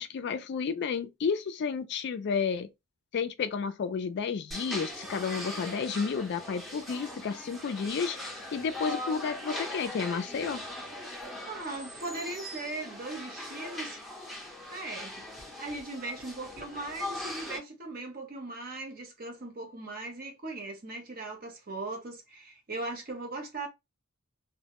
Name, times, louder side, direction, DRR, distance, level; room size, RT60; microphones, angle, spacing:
voice 1, 0.0-2.7 3.1-8.2 8.5-10.6, left 5 dB, 50° left, 0.3 m, -31 dB
sound 1, 4.5-17.6, left 1 dB, ahead, 0.8 m, -40 dB
voice 2, 11.2-14.0 14.7-15.3 15.5-23.7, right 2 dB, 45° right, 0.8 m, -39 dB
2.1 x 2.0 x 2.8 m
head